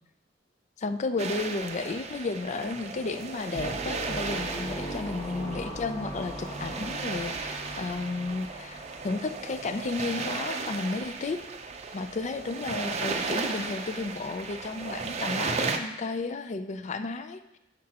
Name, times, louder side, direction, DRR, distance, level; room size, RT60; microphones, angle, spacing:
voice 1, 0.8-11.4 11.9-17.6, left 3 dB, 40° left, 10 dB, 0.4 m, -33 dB
sound 1, 1.2-15.8, right 4 dB, 35° right, 0.5 m, -35 dB
sound 2, 3.5-10.0, equal, 20° left, 1.4 m, -39 dB
9.8 x 6.4 x 2.9 m, 0.91 s
head